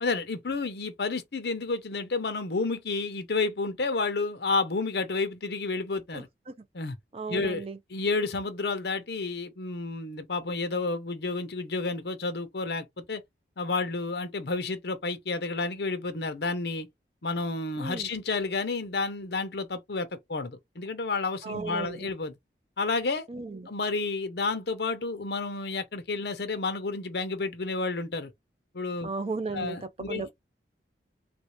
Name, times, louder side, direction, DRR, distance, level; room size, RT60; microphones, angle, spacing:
voice 1, 0.0-6.3 6.7-7.0 7.3-13.2 13.6-16.9 17.2-22.3 22.8-23.3 23.7-28.3 28.7-29.1 29.5-30.3, left 3 dB, 65° left, 0.7 m, -30 dB
voice 2, 7.1-7.8 17.8-18.1 21.4-22.0 23.3-23.7 29.0-29.8 30.1-30.3, right 4 dB, 35° right, 0.4 m, -34 dB
3.1 x 2.6 x 3.1 m
head